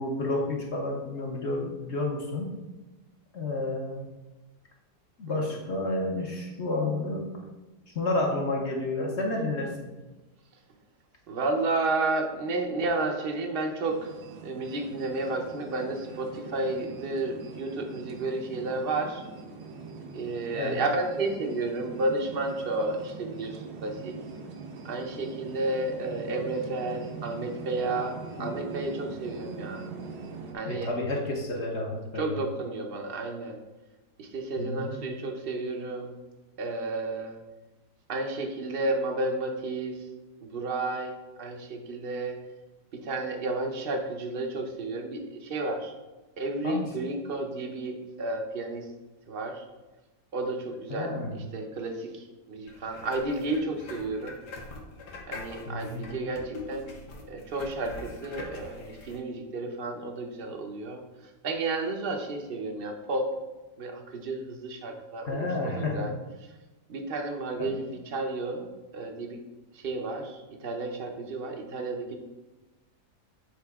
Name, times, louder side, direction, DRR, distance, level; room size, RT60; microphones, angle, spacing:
voice 1, 0.0-2.5 3.3-4.1 5.2-7.3 7.9-9.9 20.5-20.8 28.4-28.5 30.6-32.3 34.6-35.2 46.6-46.9 50.9-51.4 55.7-56.3 65.3-66.1 67.6-67.7, left 2 dB, 50° left, 0 dB, 1.0 m, -30 dB
voice 2, 5.3-5.6 11.3-14.1 14.4-19.2 20.1-24.1 24.8-29.8 30.5-30.9 32.1-33.6 34.2-36.1 36.6-37.4 38.1-40.1 40.4-41.1 41.4-42.4 42.9-45.9 46.4-48.8 49.3-49.6 50.3-51.1 51.5-54.4 55.3-56.9 57.3-61.0 61.4-63.3 63.8-66.1 66.9-69.4 69.7-72.2, right 2 dB, 50° right, 4 dB, 0.7 m, -32 dB
sound 1, 13.8-30.5, right 4 dB, 70° right, 1.2 m, -42 dB
sound 2, 52.7-59.2, left 3 dB, 85° left, 1.6 m, -43 dB
7.7 x 3.9 x 3.5 m, 1.1 s
omnidirectional pair, 1.8 m